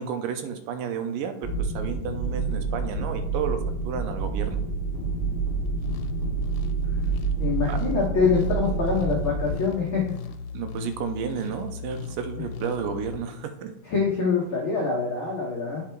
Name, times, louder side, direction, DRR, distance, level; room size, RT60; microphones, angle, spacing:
voice 1, 0.0-4.6 7.7-7.8 10.5-13.7, right 7 dB, 85° right, 8 dB, 2.4 m, -32 dB
sound 1, 1.4-9.5, right 4 dB, 30° right, 2.2 m, -28 dB
sound 2, 5.7-13.2, left 6 dB, 90° left, 2.4 m, -37 dB
voice 2, 7.4-10.1 13.8-15.8, left 5 dB, 65° left, -4 dB, 1.3 m, -25 dB
8.7 x 4.6 x 4.5 m, 0.78 s
omnidirectional pair, 4.0 m